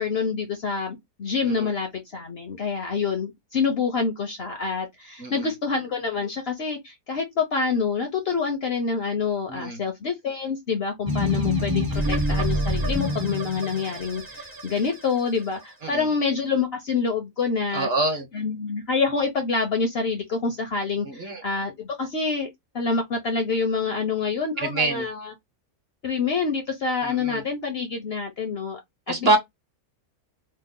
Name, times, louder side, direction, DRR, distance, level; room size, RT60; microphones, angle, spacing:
voice 1, 0.0-17.9 18.3-22.5 22.7-25.3 26.0-28.8 29.1-29.4, left 5 dB, 55° left, 0.7 m, -27 dB
voice 2, 9.5-9.8 15.8-16.1 17.7-18.3 21.0-21.4 24.6-25.1 27.0-27.4 29.1-29.4, right 3 dB, 50° right, 1.0 m, -25 dB
sound 1, 11.1-15.4, left 1 dB, 20° right, 0.6 m, -26 dB
3.1 x 2.1 x 3.6 m
omnidirectional pair, 1.6 m